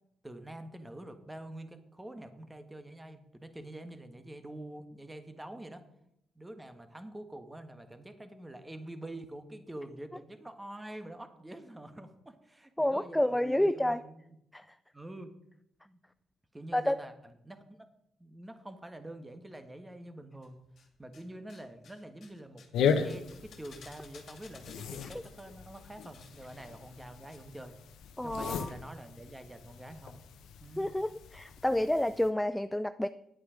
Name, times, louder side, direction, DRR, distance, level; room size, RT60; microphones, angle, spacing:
voice 1, 0.2-5.8 6.3-14.4 14.9-15.3 15.8-16.0 16.5-17.1 17.4-17.9 18.2-20.6 21.0-27.7 28.2-30.2 30.6-30.9, right 1 dB, 10° right, 8 dB, 1.4 m, -46 dB
voice 2, 12.8-14.0 14.5-14.8 16.7-17.0 28.2-28.7 30.8-33.1, left 1 dB, 5° left, 13 dB, 0.3 m, -29 dB
sound 1, 20.4-21.2 21.5-27.4 27.6-27.7, left 5 dB, 55° left, 2.0 m, -57 dB
sound 2, 22.7-32.3, left 6 dB, 80° left, 1.0 m, -37 dB
10.0 x 8.4 x 5.1 m, 0.78 s
cardioid pair, 90°, 0 cm